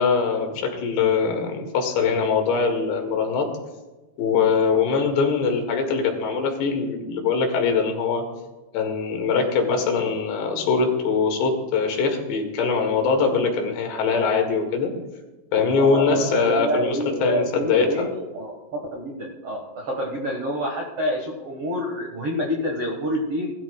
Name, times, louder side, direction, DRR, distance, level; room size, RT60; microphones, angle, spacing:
voice 1, 0.0-3.5 4.2-8.3 8.7-14.9 15.5-18.1, left 5 dB, 75° left, 3 dB, 3.9 m, -22 dB
voice 2, 15.7-23.5, equal, 90° right, 0 dB, 1.3 m, -27 dB
20.0 x 13.0 x 2.3 m, 1.2 s
omnidirectional pair, 5.1 m